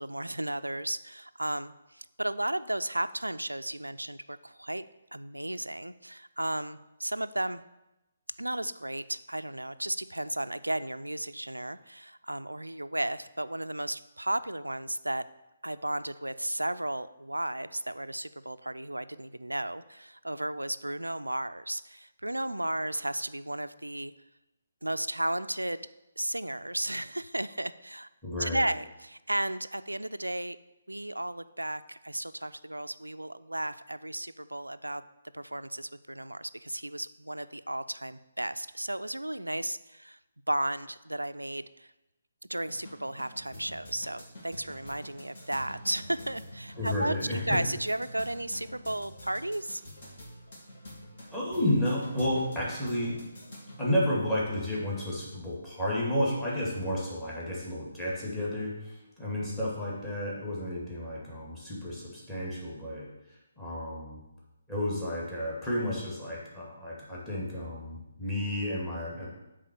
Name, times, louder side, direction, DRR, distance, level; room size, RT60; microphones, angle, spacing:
voice 1, 0.0-4.8 5.1-7.6 8.4-15.2 15.6-24.1 24.8-25.9 26.2-28.1 28.4-30.6 30.9-35.0 35.3-40.2 40.5-41.9 42.5-49.8, right 1 dB, 85° right, 13 dB, 0.3 m, -34 dB
voice 2, 28.2-28.7 46.8-47.6 51.3-53.2 53.8-63.1 63.6-64.2 64.7-69.3, left 1 dB, 10° left, -6 dB, 2.2 m, -31 dB
sound 1, 42.6-53.8, equal, 45° left, 2.4 m, -47 dB
8.3 x 3.8 x 6.4 m, 0.96 s
figure-of-eight pair, 140°, 0 cm